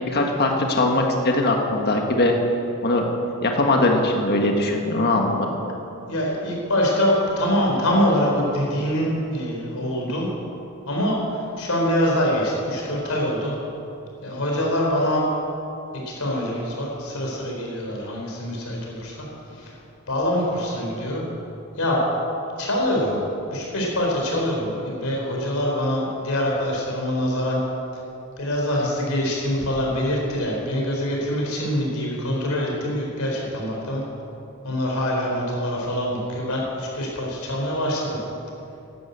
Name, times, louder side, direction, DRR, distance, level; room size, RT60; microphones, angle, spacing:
voice 1, 0.1-2.3 2.8-3.0 3.4-5.5, left 2 dB, 50° left, 2 dB, 1.6 m, -20 dB
voice 2, 6.1-10.3 10.9-13.5 14.2-15.2 16.1-19.7 20.1-21.2 21.8-22.0 22.6-23.2 23.5-27.6 28.4-34.0 34.6-38.2, equal, 70° left, -2 dB, 4.3 m, -24 dB
12.5 x 11.5 x 8.2 m, 2.8 s
head